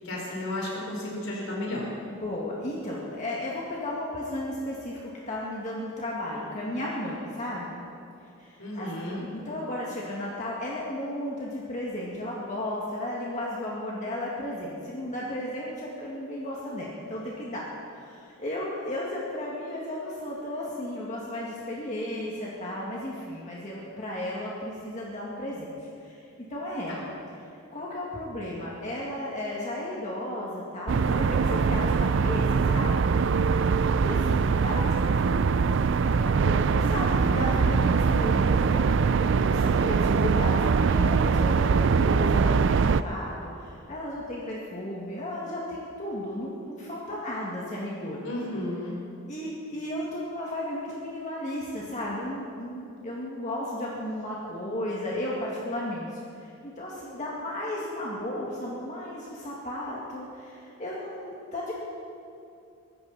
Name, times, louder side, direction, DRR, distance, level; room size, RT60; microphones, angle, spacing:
voice 1, 0.0-1.9 8.6-9.2 26.9-27.0 48.2-49.0, left 1 dB, 70° left, -3 dB, 4.5 m, -33 dB
voice 2, 2.1-7.8 8.4-17.6 18.0-25.7 26.0-26.2 26.5-27.0 27.7-33.1 33.6-35.7 36.2-48.2 49.3-61.7, left 1 dB, 35° left, -5 dB, 2.1 m, -34 dB
sound 1, 30.9-43.0, right 5 dB, 55° right, 0.4 m, -23 dB
24.0 x 13.5 x 4.2 m, 2.6 s
head